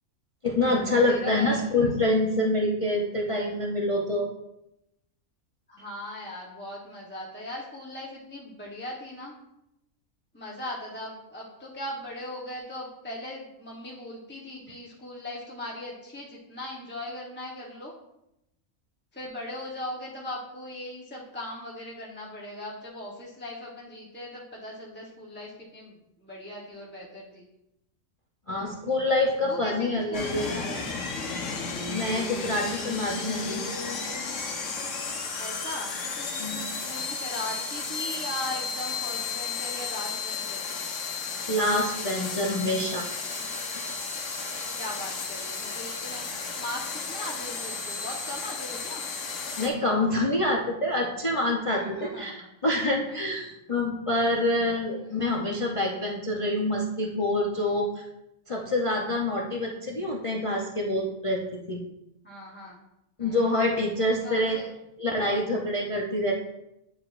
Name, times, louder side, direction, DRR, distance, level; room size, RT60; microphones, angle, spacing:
voice 1, 0.4-4.3 28.5-30.8 31.9-33.6 36.4-36.6 41.5-43.1 49.6-58.1 58.5-61.4 61.7-61.8 63.2-64.6 65.0-66.3, left 1 dB, 40° left, -2 dB, 0.4 m, -26 dB
voice 2, 1.1-1.9 5.7-9.3 10.3-17.9 19.1-27.5 29.5-30.7 35.4-40.8 44.8-49.0 51.7-52.3 53.1-53.5 55.1-55.2 62.2-62.8 63.2-63.5 64.2-64.7, left 1 dB, 10° left, -5 dB, 0.8 m, -39 dB
sound 1, 30.1-49.7, left 4 dB, 65° left, 1.2 m, -33 dB
9.3 x 4.7 x 2.5 m, 0.85 s
omnidirectional pair, 1.4 m